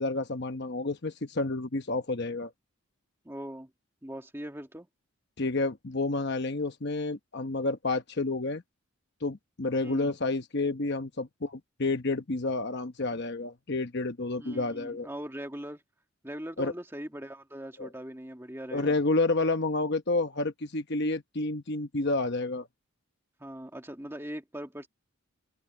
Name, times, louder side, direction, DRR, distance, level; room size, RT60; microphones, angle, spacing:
voice 1, 0.0-2.5 5.4-8.6 9.2-15.1 16.6-16.7 17.8-17.9 18.7-22.7, left 2 dB, 50° left, 1.0 m, -30 dB
voice 2, 3.2-3.7 4.0-4.9 9.8-10.1 14.4-15.8 16.2-19.0 23.4-24.9, equal, 10° right, 2.0 m, -40 dB
head